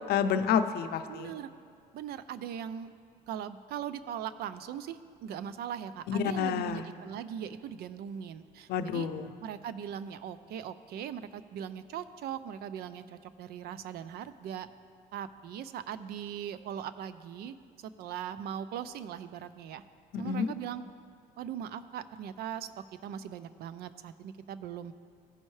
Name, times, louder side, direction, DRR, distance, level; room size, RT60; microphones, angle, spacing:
voice 1, 0.1-1.3 6.1-6.8 8.7-9.3 20.1-20.5, left 7 dB, 70° left, 10 dB, 0.5 m, -29 dB
voice 2, 1.1-1.5 1.9-2.9 3.3-9.1 9.4-14.7 15.1-19.8 20.2-20.8 21.4-22.7 23.0-24.9, right 9 dB, 70° right, 13 dB, 0.4 m, -40 dB
15.5 x 5.3 x 3.2 m, 2.3 s
cardioid pair, 110°, 17 cm